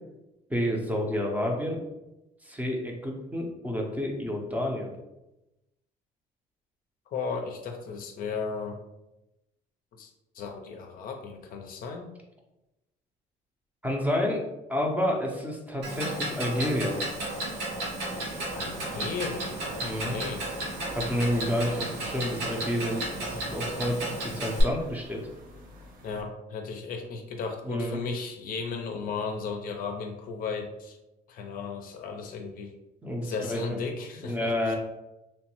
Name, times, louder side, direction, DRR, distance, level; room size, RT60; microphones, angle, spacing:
voice 1, 0.5-1.8 2.4-4.9 13.8-14.4 14.7-17.0 19.8-20.2 20.9-23.1 23.5-25.2 27.7-28.0 33.0-33.8 34.2-34.8, equal, 10° right, 0 dB, 0.5 m, -29 dB
voice 2, 7.1-8.8 9.9-10.1 10.3-12.1 18.5-20.4 26.0-31.0 31.3-32.7 33.2-34.8, left 5 dB, 55° left, 4 dB, 0.5 m, -35 dB
Clock, 15.8-24.6, right 1 dB, 80° right, 1.0 m, -34 dB
sound 1, 16.5-26.2, right 1 dB, 55° right, 0.7 m, -44 dB
3.0 x 2.0 x 3.0 m, 0.94 s
cardioid pair, 110°, 17 cm